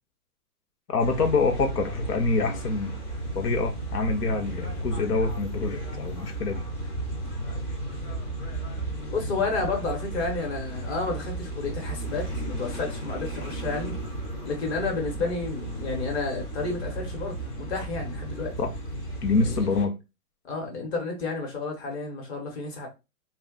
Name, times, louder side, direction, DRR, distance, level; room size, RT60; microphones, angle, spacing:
voice 1, 0.9-2.9 3.3-6.6 15.2-15.3 18.6-18.7 19.2-19.9, left 3 dB, 90° left, 0.9 m, -26 dB
sound 1, 1.0-19.8, right 1 dB, 20° left, 0.6 m, -34 dB
voice 2, 9.1-14.0 14.4-18.5 19.3-19.8 20.4-22.9, left 3 dB, 45° left, 1.2 m, -31 dB
2.4 x 2.2 x 3.6 m
hypercardioid pair, 135°, 45 cm